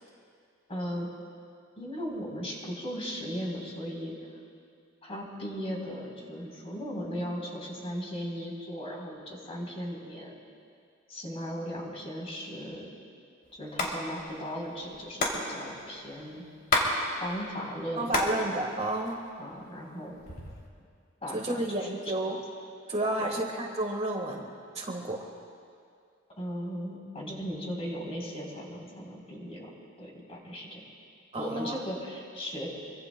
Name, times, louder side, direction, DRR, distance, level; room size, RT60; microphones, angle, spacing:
voice 1, 0.7-1.1 1.8-4.2 5.0-10.4 11.1-12.9 13.5-16.4 17.2-18.3 19.4-20.2 21.2-21.9 23.2-23.3 26.4-29.7 30.0-30.8 31.4-32.7, equal, 30° left, -1 dB, 3.7 m, -37 dB
Hands, 13.6-13.9 14.2-14.3 14.5-16.9 17.2-18.4 18.7-19.5 20.1-20.7, left 2 dB, 50° left, 2.8 m, -29 dB
voice 2, 18.0-19.3 21.3-22.4 22.9-24.5 24.7-25.2 31.3-31.7, right 1 dB, 30° right, 1 dB, 1.4 m, -31 dB
26.0 x 24.0 x 2.2 m, 2.3 s
head